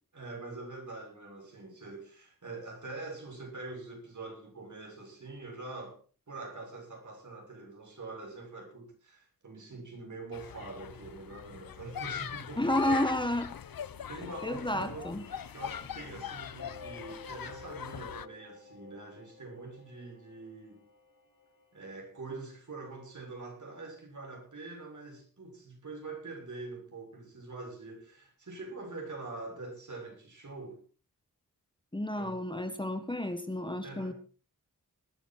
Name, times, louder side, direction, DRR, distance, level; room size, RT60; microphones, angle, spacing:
voice 1, 0.1-6.0 6.3-13.1 13.9-20.8 21.7-30.8 32.2-32.4 33.8-34.1, right 3 dB, 60° right, 6.8 m, -44 dB
sound 1, 10.3-18.3, left 9 dB, 85° left, 0.8 m, -41 dB
voice 2, 12.6-13.5 14.4-15.2 31.9-34.1, left 1 dB, 15° left, 1.4 m, -31 dB
sound 2, 15.2-22.1, left 3 dB, 65° left, 6.3 m, -53 dB
20.0 x 11.0 x 4.4 m
wide cardioid pair, 85°, 34 cm